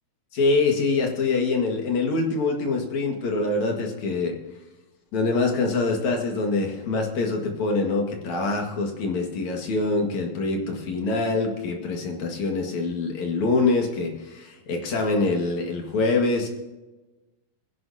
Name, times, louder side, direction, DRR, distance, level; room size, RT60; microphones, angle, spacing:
voice 1, 0.3-4.4 5.1-16.5, left 3 dB, 55° left, 2 dB, 2.9 m, -25 dB
20.5 x 11.0 x 2.8 m, 1.1 s
omnidirectional pair, 4.3 m